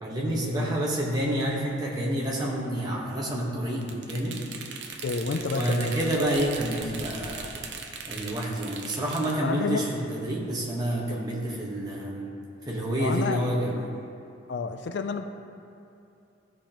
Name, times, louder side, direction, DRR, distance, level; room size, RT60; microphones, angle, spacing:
voice 1, 0.0-4.4 5.4-7.5 8.1-12.3 12.7-13.8, right 1 dB, 20° right, -4 dB, 1.2 m, -28 dB
sound 1, 3.8-9.4, right 5 dB, 65° right, 0.7 m, -39 dB
voice 2, 5.0-6.0 9.4-9.9 11.1-11.2 13.0-13.8 14.5-15.2, left 4 dB, 60° left, 7 dB, 0.4 m, -30 dB
14.5 x 5.0 x 3.0 m, 2.7 s
head